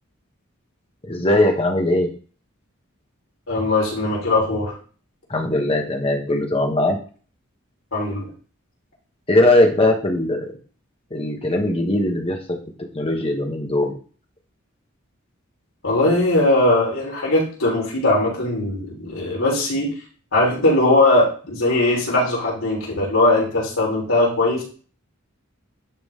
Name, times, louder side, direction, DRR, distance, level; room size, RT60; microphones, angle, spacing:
voice 1, 1.0-2.1 5.3-7.0 9.3-10.5 11.1-12.6 12.9-13.9, left 1 dB, 25° left, 2 dB, 1.3 m, -20 dB
voice 2, 3.5-4.8 7.9-8.3 15.8-19.9 20.3-24.6, left 2 dB, 75° left, -4 dB, 3.4 m, -19 dB
10.5 x 4.0 x 3.6 m, 0.40 s
head